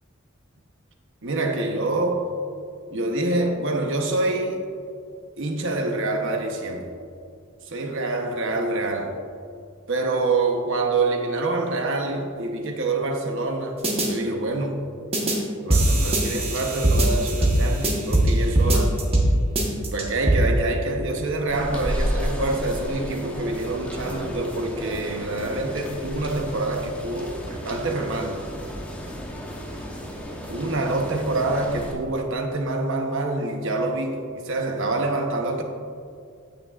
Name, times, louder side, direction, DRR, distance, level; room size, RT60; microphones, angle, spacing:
voice 1, 1.2-2.3 2.9-4.6 5.4-7.0 7.7-9.2 9.9-13.8 14.0-14.8 15.6-19.0 19.7-28.4 30.5-35.6, right 2 dB, 60° right, 1.0 m, -26 dB
sound 1, 13.8-14.1 15.1-15.4 15.7-18.3 18.6-19.3 19.6-20.4, right 1 dB, 25° right, 1.2 m, -20 dB
sound 2, 21.5-31.9, equal, 5° left, 0.9 m, -33 dB
16.5 x 6.2 x 2.5 m
head